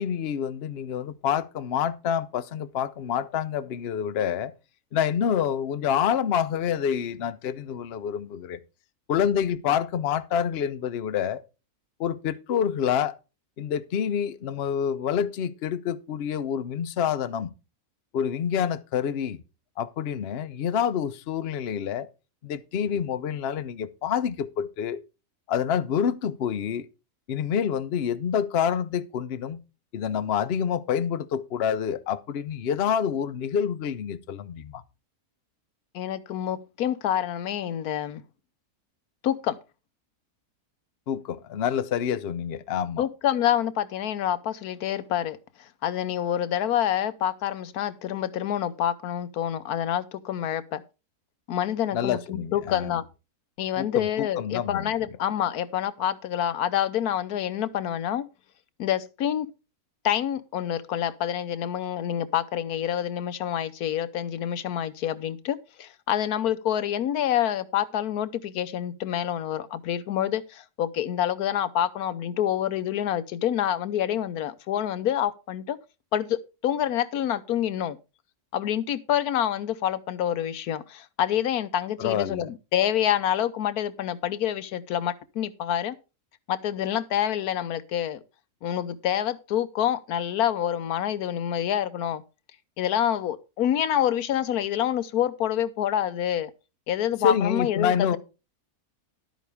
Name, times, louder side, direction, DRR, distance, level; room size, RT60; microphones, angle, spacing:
voice 1, 0.0-4.5 4.9-8.6 9.1-11.4 12.0-13.2 13.6-17.5 18.1-19.4 19.8-22.1 22.4-25.0 25.5-26.9 27.3-29.6 29.9-34.8 41.1-43.1 51.9-52.9 53.8-54.9 82.0-82.5 97.2-98.2, left 8 dB, 55° left, 0.8 m, -27 dB
voice 2, 35.9-38.2 39.2-39.6 43.0-50.8 51.5-53.0 53.6-58.3 58.8-59.5 60.0-75.8 76.1-78.0 78.5-86.0 86.5-88.2 88.6-92.2 92.8-96.5 96.9-98.2, left 10 dB, 80° left, 1.2 m, -27 dB
11.5 x 9.1 x 3.5 m
omnidirectional pair, 1.6 m